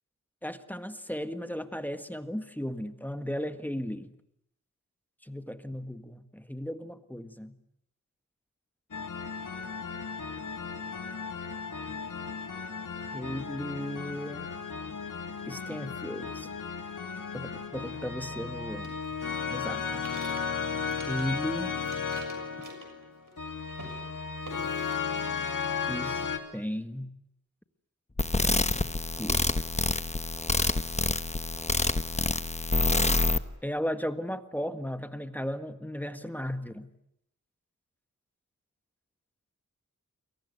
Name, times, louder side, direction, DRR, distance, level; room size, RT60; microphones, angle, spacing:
voice 1, 0.4-4.1 5.2-7.5 13.1-14.5 15.5-16.5 17.3-18.9 19.5-20.0 21.1-21.7 25.9-26.3 26.5-27.1 29.2-29.5 33.6-36.9, equal, 5° left, 1.7 m, -35 dB
sound 1, 8.9-26.4, left 6 dB, 85° left, 3.0 m, -35 dB
sound 2, 18.8-21.5 21.7-23.4 23.7-24.0 24.4-25.3 25.6-26.4, right 3 dB, 85° right, 6.5 m, -49 dB
sound 3, 28.2-33.4, left 2 dB, 20° left, 1.1 m, -27 dB
29.0 x 22.5 x 8.1 m
wide cardioid pair, 90°, 31 cm